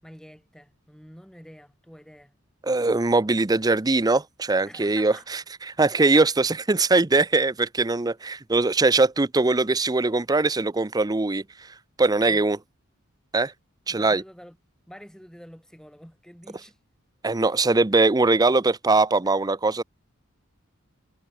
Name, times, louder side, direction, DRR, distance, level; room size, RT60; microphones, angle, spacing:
voice 1, 0.0-2.3 4.7-5.4 5.9-6.2 12.2-12.4 13.9-14.6 14.9-16.8, equal, 5° left, 6.4 m, -47 dB
voice 2, 2.6-5.4 5.8-11.4 12.0-12.6 13.3-13.5 13.9-14.2 17.2-19.8, right 3 dB, 20° right, 0.6 m, -21 dB
head